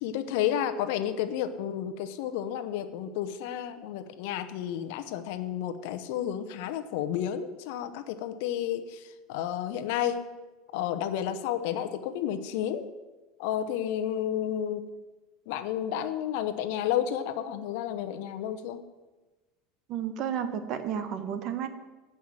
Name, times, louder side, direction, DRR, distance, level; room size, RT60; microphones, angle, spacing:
voice 1, 0.0-9.0 9.3-10.2 10.7-12.9 13.4-14.8 15.5-18.8, left 10 dB, 75° left, 10 dB, 0.8 m, -31 dB
voice 2, 19.9-21.7, right 8 dB, 55° right, 10 dB, 1.0 m, -32 dB
8.8 x 5.6 x 7.8 m, 1.2 s
supercardioid pair, 110°, 0 cm